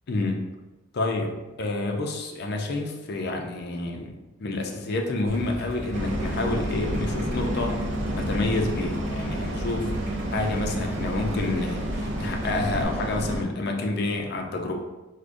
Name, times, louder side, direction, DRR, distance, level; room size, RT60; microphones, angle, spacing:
voice 1, 0.1-0.4 0.9-4.1 4.4-7.8 8.1-9.9 10.3-14.8, left 2 dB, 55° left, 2 dB, 0.4 m, -29 dB
Idling, 5.3-12.8, right 1 dB, 45° right, 0.8 m, -38 dB
sound 1, 5.9-13.4, equal, 70° right, 0.5 m, -30 dB
4.7 x 2.1 x 2.5 m, 1.1 s
head